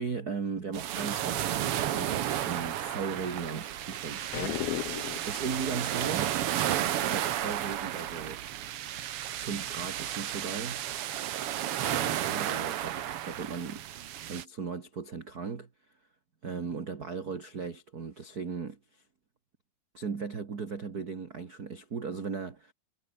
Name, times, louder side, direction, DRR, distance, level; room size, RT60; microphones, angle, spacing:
voice 1, 0.0-4.6 5.3-6.3 7.0-8.4 9.3-10.8 11.8-13.8 14.3-15.7 16.4-19.0 19.9-22.7, right 5 dB, 35° right, 1.9 m, -37 dB
sound 1, 0.7-14.4, right 11 dB, 80° right, 1.3 m, -33 dB
sound 2, 4.3-5.4, left 15 dB, 85° left, 2.9 m, -34 dB
omnidirectional pair, 4.2 m